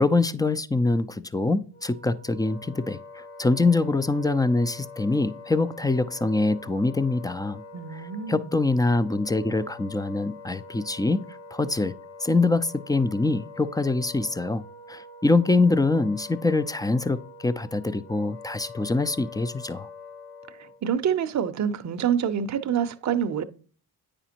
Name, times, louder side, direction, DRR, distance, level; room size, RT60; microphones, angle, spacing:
voice 1, 0.0-7.6 8.3-11.2 11.5-11.9 12.2-14.6 14.9-19.9, left 3 dB, 10° left, 0.3 m, -24 dB
Wind instrument woodwind instrument, 1.7-20.8, left 3 dB, 85° left, 1.8 m, -45 dB
voice 2, 7.7-8.5 20.5-23.4, right 8 dB, 35° right, 0.6 m, -27 dB
8.9 x 5.0 x 2.8 m
supercardioid pair, 55°, 48 cm